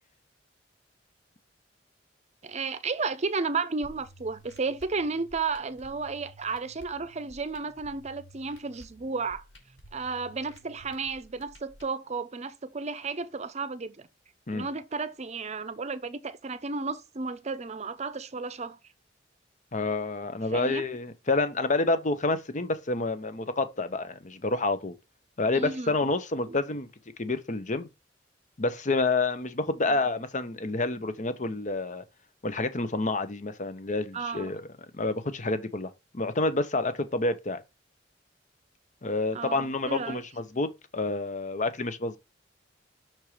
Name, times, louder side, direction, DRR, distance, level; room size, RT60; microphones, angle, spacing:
voice 1, 2.4-9.4 9.9-14.1 14.5-18.8 20.5-20.8 25.5-26.0 26.5-26.6 29.9-30.0 34.1-34.5 39.3-40.2, right 4 dB, 40° right, 0.7 m, -33 dB
sound 1, 3.8-11.8, right 1 dB, 90° left, 3.1 m, -53 dB
voice 2, 19.7-24.9 25.4-26.9 27.2-27.9 28.6-32.0 32.4-34.7 34.9-35.9 36.1-37.6 39.0-42.2, left 3 dB, 45° left, 0.9 m, -28 dB
6.1 x 4.4 x 4.9 m
head